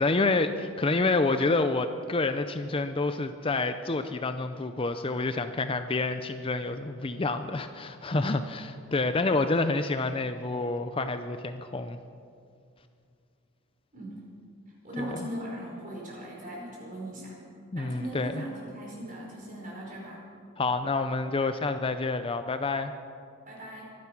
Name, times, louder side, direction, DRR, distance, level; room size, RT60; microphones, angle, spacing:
voice 1, 0.0-12.0 15.0-15.2 17.7-18.4 20.6-22.9, left 3 dB, 25° left, 9 dB, 0.5 m, -28 dB
voice 2, 14.8-17.4 17.7-20.2 23.5-23.8, right 1 dB, 40° right, -3 dB, 5.1 m, -39 dB
24.5 x 9.6 x 6.0 m, 2.4 s
head